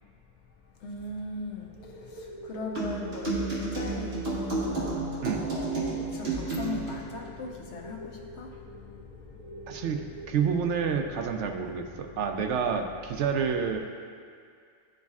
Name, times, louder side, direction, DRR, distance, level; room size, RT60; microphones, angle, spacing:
voice 1, 0.8-4.8 5.4-9.0 10.1-10.3 11.2-13.2, left 3 dB, 75° left, 1 dB, 1.0 m, -40 dB
sound 1, 1.3-1.5 1.8-11.1, right 1 dB, 15° right, 0.7 m, -47 dB
sound 2, 2.8-7.0, right 3 dB, 60° right, 1.7 m, -31 dB
voice 2, 9.7-13.8, right 6 dB, 80° right, 4 dB, 0.9 m, -29 dB
12.0 x 4.1 x 2.4 m, 2.3 s
omnidirectional pair, 1.2 m